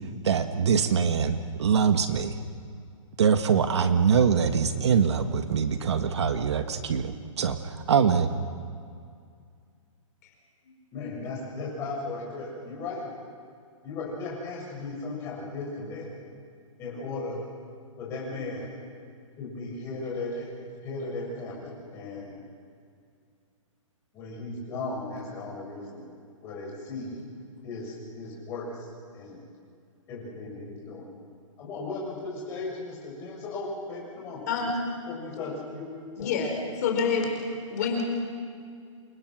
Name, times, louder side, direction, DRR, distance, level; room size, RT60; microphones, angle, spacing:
voice 1, 0.2-2.3 3.2-8.3, right 6 dB, 55° right, 8 dB, 1.5 m, -23 dB
voice 2, 10.6-13.0 13.8-16.1 16.8-17.4 18.0-18.7 19.4-20.5 20.8-22.3 24.1-26.1 26.4-27.3 27.6-28.9 29.1-29.4 30.1-31.1 31.6-34.4 35.1-35.9 36.2-36.3, left 3 dB, 15° left, -3 dB, 7.2 m, -36 dB
voice 3, 36.2-36.5 36.8-37.3 37.7-38.0, left 6 dB, 30° left, 2 dB, 4.5 m, -26 dB
29.0 x 29.0 x 6.3 m, 2.3 s
hypercardioid pair, 175°, 17 cm